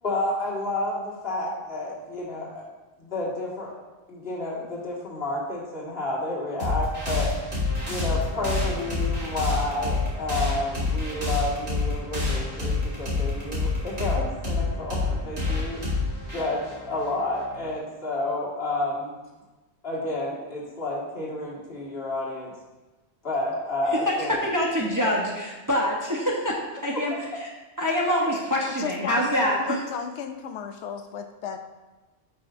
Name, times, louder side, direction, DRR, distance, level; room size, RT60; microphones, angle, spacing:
voice 1, 0.0-2.6 3.0-3.7 4.1-7.3 7.9-15.8 16.3-19.1 19.8-22.5 23.2-24.4, left 2 dB, 60° left, -5 dB, 2.1 m, -30 dB
sound 1, 6.6-17.7, left 3 dB, 70° right, 2.4 m, -28 dB
voice 2, 24.1-27.1 27.4-27.5 27.8-29.8, equal, 20° right, -3 dB, 0.9 m, -25 dB
voice 3, 28.8-31.6, left 7 dB, 85° left, 7 dB, 0.9 m, -33 dB
10.5 x 5.6 x 2.6 m, 1.1 s
omnidirectional pair, 1.1 m